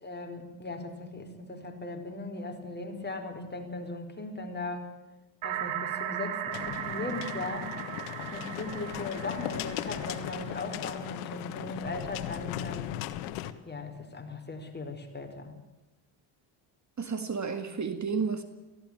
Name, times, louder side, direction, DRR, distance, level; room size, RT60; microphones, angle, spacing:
voice 1, 0.0-4.9 5.4-7.7 8.2-12.9 13.6-15.5, left 2 dB, 20° left, 4.9 m, -38 dB
sound 1, 5.4-11.1, right 11 dB, 75° right, 2.5 m, -37 dB
sound 2, 6.5-13.5, left 13 dB, 85° left, 1.5 m, -37 dB
voice 2, 17.0-18.4, right 5 dB, 35° right, 2.1 m, -31 dB
17.5 x 16.5 x 9.0 m
supercardioid pair, 75°, 48 cm